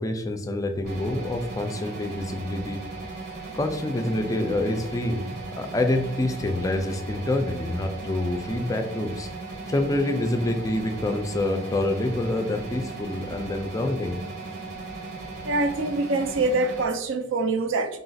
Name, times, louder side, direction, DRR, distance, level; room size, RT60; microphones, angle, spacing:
voice 1, 0.0-2.8 3.5-9.3 9.7-14.2, left 1 dB, 15° left, 5 dB, 0.4 m, -27 dB
sound 1, 0.9-16.9, right 3 dB, 50° right, 0.9 m, -37 dB
voice 2, 15.4-18.0, right 2 dB, 70° right, 7 dB, 0.5 m, -25 dB
4.0 x 2.4 x 3.9 m, 0.80 s
head